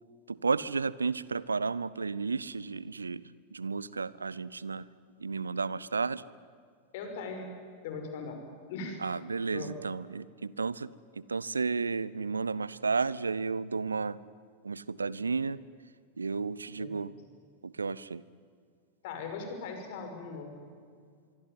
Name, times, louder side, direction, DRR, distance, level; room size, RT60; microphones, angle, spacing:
voice 1, 0.3-4.9 5.2-6.2 9.0-14.2 14.6-15.6 16.2-17.1 17.6-18.2, right 4 dB, 75° right, 21 dB, 0.7 m, -32 dB
voice 2, 6.9-7.5 7.8-8.4 8.7-9.0 9.5-9.7 16.8-17.1 19.0-20.7, left 4 dB, 50° left, 5 dB, 5.9 m, -39 dB
24.5 x 24.0 x 9.6 m, 2.1 s
figure-of-eight pair, 90°, 0 cm